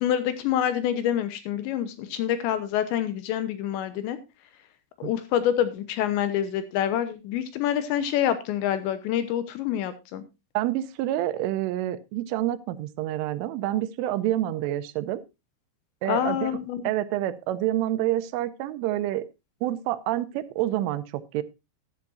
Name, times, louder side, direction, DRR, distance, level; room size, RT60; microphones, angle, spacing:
voice 1, 0.0-4.2 5.0-10.2 16.1-16.8, left 10 dB, 75° left, 12 dB, 3.0 m, -26 dB
voice 2, 10.6-15.2 16.0-19.3 19.6-21.4, right 14 dB, 90° right, 14 dB, 3.4 m, -28 dB
13.5 x 12.0 x 2.6 m, 0.24 s
omnidirectional pair, 5.5 m